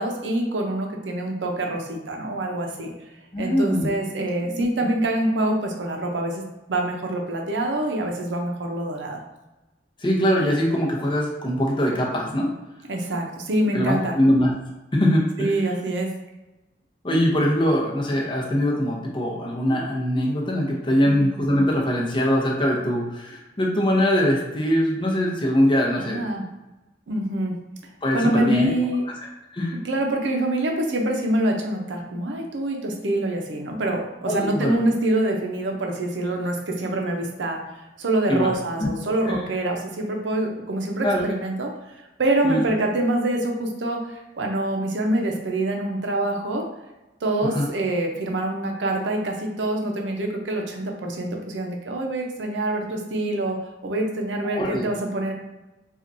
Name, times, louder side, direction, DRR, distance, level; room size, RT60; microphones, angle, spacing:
voice 1, 0.0-2.9 3.4-6.4 6.7-9.2 12.9-14.2 15.4-16.1 21.0-21.3 26.0-26.5 27.1-27.6 28.1-29.0 29.7-37.6 38.0-41.7 42.2-46.7 47.2-53.6 53.8-55.3, right 1 dB, 80° right, 2 dB, 0.6 m, -25 dB
voice 2, 3.3-3.9 4.2-4.9 10.0-12.5 13.7-14.5 14.9-15.5 17.0-26.2 28.0-28.8 29.5-29.8 34.3-34.7 38.3-38.5 38.8-38.9 39.3-39.4 41.0-41.2 42.4-42.6 47.4-47.7 54.4-54.9, equal, 25° left, -2 dB, 0.7 m, -22 dB
4.3 x 2.4 x 2.6 m, 1.0 s
head